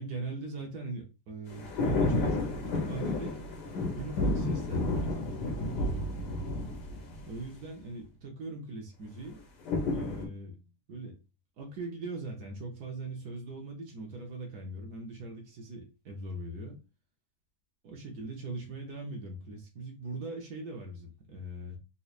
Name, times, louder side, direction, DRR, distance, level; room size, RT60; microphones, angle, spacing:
voice 1, 0.0-3.4 4.0-6.3 7.3-9.4 9.9-10.6 10.9-11.2 11.6-16.8 17.8-21.8, right 2 dB, 70° right, 1.4 m, -41 dB
sound 1, 1.5-7.5 9.7-10.3, left 2 dB, 90° left, 1.6 m, -31 dB
4.2 x 3.2 x 2.4 m
omnidirectional pair, 1.7 m